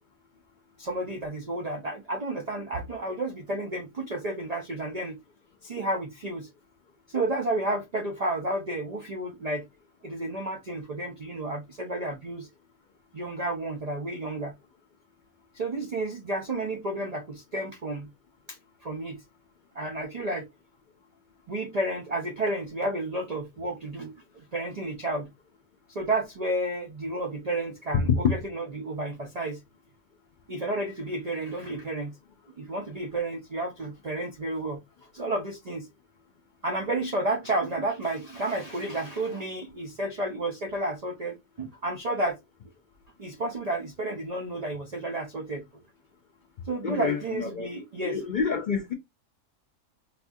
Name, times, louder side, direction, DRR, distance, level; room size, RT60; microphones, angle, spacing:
voice 1, 0.8-5.2 5.6-6.5 7.1-9.7 10.0-12.5 13.1-14.5 15.5-18.1 18.5-19.2 19.7-20.5 21.5-25.3 25.9-29.6 30.5-32.2 32.6-34.8 35.1-35.9 36.6-42.4 43.2-45.7 46.6-48.2, right 2 dB, 75° right, 0.3 m, -31 dB
voice 2, 27.9-28.3 46.8-47.7 48.0-48.9, left 6 dB, 80° left, 0.4 m, -26 dB
4.1 x 2.3 x 2.6 m
omnidirectional pair, 1.4 m